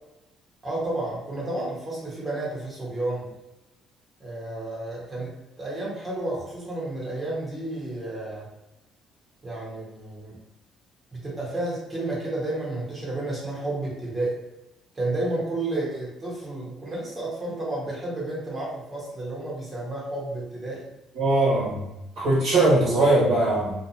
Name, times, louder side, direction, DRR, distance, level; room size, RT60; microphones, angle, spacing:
voice 1, 0.6-3.2 4.2-5.3 5.6-8.5 9.4-10.4 11.1-14.4 14.9-20.9, right 2 dB, 25° right, -5 dB, 1.0 m, -31 dB
voice 2, 21.1-21.8 22.2-23.7, right 2 dB, 65° right, -9 dB, 1.1 m, -20 dB
2.5 x 2.2 x 2.8 m, 0.93 s
cardioid pair, 110°, 0 cm